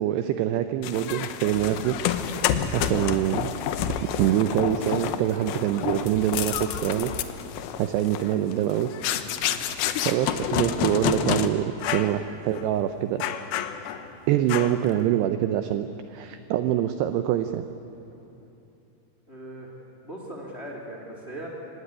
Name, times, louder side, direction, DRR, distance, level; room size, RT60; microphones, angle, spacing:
voice 1, 0.0-2.0 2.7-3.5 4.2-7.1 7.8-8.9 9.2-9.5 10.0-11.7 11.9-13.2 14.3-17.6, right 12 dB, 80° right, 9 dB, 2.5 m, -25 dB
sound 1, 0.8-11.5 11.8-12.2 12.5-12.7 13.2-14.1 14.5-14.9, left 9 dB, 80° left, 2.2 m, -29 dB
sound 2, 3.6-18.3, equal, 55° right, 6.7 m, -50 dB
voice 2, 19.3-19.7 20.0-21.5, right 1 dB, 20° left, -1 dB, 2.2 m, -39 dB
25.0 x 18.0 x 9.8 m, 2.8 s
omnidirectional pair, 5.5 m